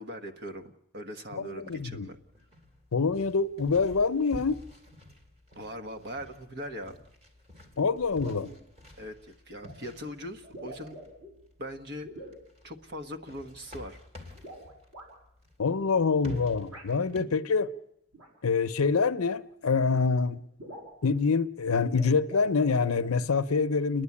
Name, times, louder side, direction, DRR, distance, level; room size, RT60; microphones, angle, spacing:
voice 1, 0.0-2.2 5.5-7.0 9.0-11.0 11.6-12.3 12.6-14.0, equal, 50° right, 1.3 m, -40 dB
voice 2, 1.4-2.1 2.9-4.6 7.8-8.5 15.6-17.7 18.4-20.4 21.0-24.0, left 4 dB, 85° left, 0.7 m, -26 dB
sound 1, 1.7-17.2, left 1 dB, 30° right, 2.8 m, -50 dB
sound 2, 8.2-8.6 9.6-9.7 10.4-11.3 12.0-12.4 14.3-15.1 16.7-16.9 18.1-18.3 19.5-19.6 19.9-20.0 20.3-20.4 20.6-21.0 21.8-22.5 22.8-23.1, right 1 dB, 90° right, 6.3 m, -45 dB
29.5 x 11.0 x 8.5 m
head